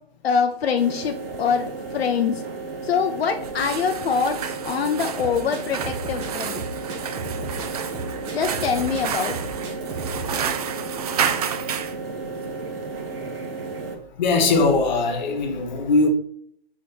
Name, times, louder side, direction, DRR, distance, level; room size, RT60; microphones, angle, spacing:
voice 1, 0.2-2.4 2.8-6.6 8.3-9.4, left 6 dB, 80° left, 0.6 m, -24 dB
sound 1, 0.8-13.9, right 3 dB, 65° right, 1.2 m, -33 dB
sound 2, 3.4-12.0, right 8 dB, 40° right, 0.4 m, -31 dB
Drum kit, 5.2-10.7, right 2 dB, 20° right, 0.8 m, -35 dB
voice 2, 13.9-16.1, left 3 dB, 45° left, 1.1 m, -21 dB
4.2 x 3.1 x 4.0 m
hypercardioid pair, 140°, 31 cm